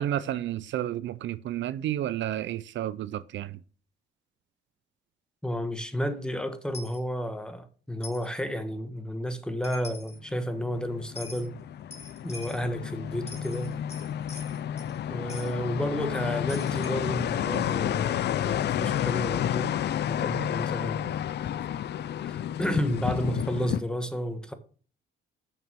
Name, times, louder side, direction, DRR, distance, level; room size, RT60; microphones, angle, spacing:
voice 1, 0.0-3.6, right 12 dB, 70° right, 0.5 m, -31 dB
voice 2, 5.4-11.6 12.2-13.7 15.1-19.7 20.1-21.1 22.2-24.5, equal, 5° left, 1.4 m, -32 dB
Coin (dropping), 6.7-7.0 8.0-8.3 9.4-9.5 9.6-10.2 11.1-11.5 11.9-12.7 13.1-15.0 15.3-15.5 16.5-19.1, left 3 dB, 35° left, 2.1 m, -46 dB
sound 1, 10.4-23.8, left 10 dB, 60° left, 0.5 m, -31 dB
7.5 x 5.9 x 6.1 m
cardioid pair, 90°, 20 cm